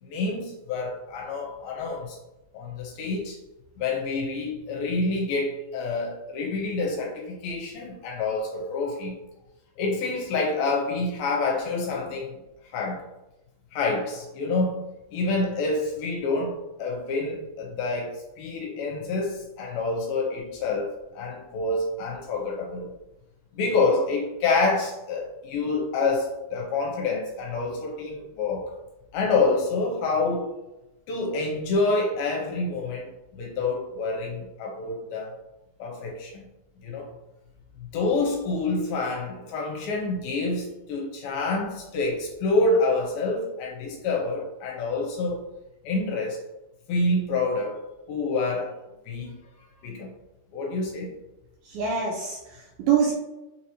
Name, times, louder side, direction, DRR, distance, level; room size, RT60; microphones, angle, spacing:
voice 1, 0.0-2.2 2.5-3.4 3.8-9.1 9.8-12.4 12.7-13.0 13.7-14.8 15.1-20.9 21.1-22.9 23.6-28.7 29.1-30.5 31.1-33.1 33.3-35.3 35.8-36.4 36.8-37.1 37.9-45.4 45.8-46.4 46.9-47.8 48.1-48.8 49.1-49.3 49.8-50.1 50.5-51.2, left 3 dB, 80° left, 0 dB, 2.5 m, -27 dB
voice 2, 51.7-53.2, right 7 dB, 80° right, 0 dB, 2.4 m, -25 dB
6.0 x 2.9 x 2.7 m, 0.97 s
omnidirectional pair, 4.5 m